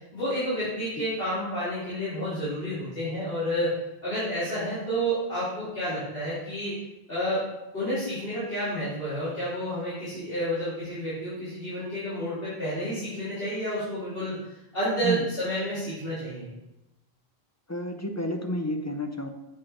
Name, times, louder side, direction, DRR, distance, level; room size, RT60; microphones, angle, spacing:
voice 1, 0.1-3.8 4.0-6.8 7.1-7.4 7.7-14.4 14.7-16.5, equal, 65° left, -14 dB, 3.4 m, -30 dB
voice 2, 17.7-19.3, equal, 20° left, 5 dB, 0.5 m, -30 dB
8.3 x 5.1 x 4.3 m, 0.95 s
omnidirectional pair, 1.1 m